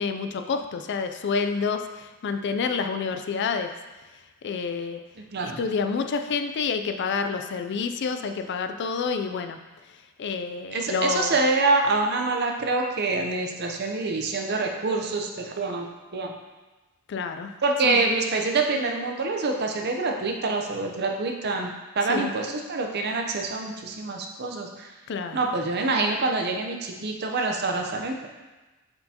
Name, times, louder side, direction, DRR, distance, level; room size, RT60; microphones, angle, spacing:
voice 1, 0.0-3.7 4.4-5.0 5.4-9.6 10.2-11.3 17.1-17.5 17.8-18.0 22.1-22.3 25.1-25.4, left 5 dB, 50° left, 7 dB, 0.4 m, -28 dB
voice 2, 10.7-16.3 17.6-24.9 25.3-28.3, right 3 dB, 45° right, 2 dB, 0.7 m, -26 dB
7.6 x 4.4 x 2.8 m, 1.2 s
head